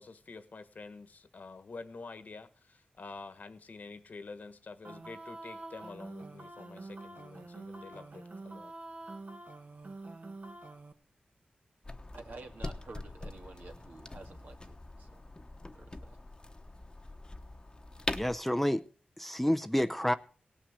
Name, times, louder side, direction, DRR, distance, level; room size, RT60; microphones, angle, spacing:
voice 1, 0.0-8.7, left 4 dB, 60° left, 1.4 m, -48 dB
sound 1, 4.8-10.9, right 2 dB, 55° right, 1.5 m, -46 dB
sound 2, 11.8-18.4, left 2 dB, 25° left, 1.1 m, -42 dB
voice 2, 12.1-15.2 15.7-16.2, right 3 dB, 70° right, 2.0 m, -50 dB
voice 3, 18.1-18.8 19.2-20.1, equal, 5° left, 0.6 m, -29 dB
17.0 x 5.9 x 8.1 m
cardioid pair, 65°, 3 cm